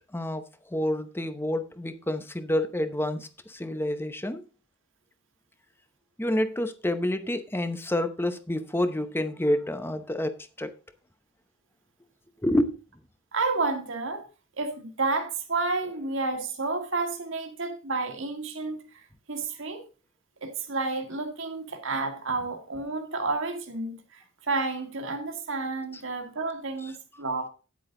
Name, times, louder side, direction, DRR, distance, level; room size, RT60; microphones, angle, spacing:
voice 1, 0.1-4.5 6.2-10.7 12.4-12.7, left 1 dB, 10° left, 0.8 m, -28 dB
voice 2, 13.3-14.3 14.6-19.0 19.3-19.8 20.4-27.5, right 3 dB, 65° right, 2.0 m, -30 dB
10.0 x 8.4 x 3.8 m
head